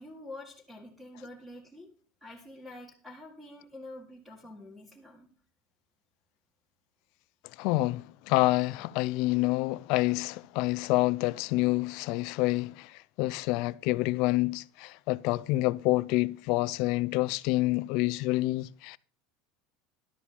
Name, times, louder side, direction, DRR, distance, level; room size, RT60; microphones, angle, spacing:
voice 1, 0.0-1.9 2.2-5.3, left 1 dB, ahead, 2.0 m, -47 dB
voice 2, 7.6-12.9 13.2-19.0, left 20 dB, 60° left, 0.5 m, -27 dB
12.5 x 4.8 x 8.5 m
supercardioid pair, 140°, 0 cm